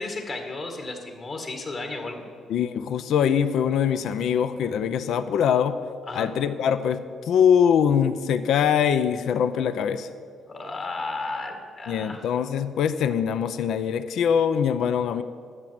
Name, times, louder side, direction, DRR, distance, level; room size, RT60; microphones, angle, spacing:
voice 1, 0.0-2.2 6.1-6.3 10.5-12.2, left 3 dB, 45° left, 3 dB, 2.0 m, -33 dB
voice 2, 2.5-5.8 6.1-10.1 11.9-15.2, left 8 dB, 75° left, 12 dB, 0.5 m, -23 dB
11.0 x 7.9 x 7.6 m, 2.2 s
cardioid pair, 90°, 0 cm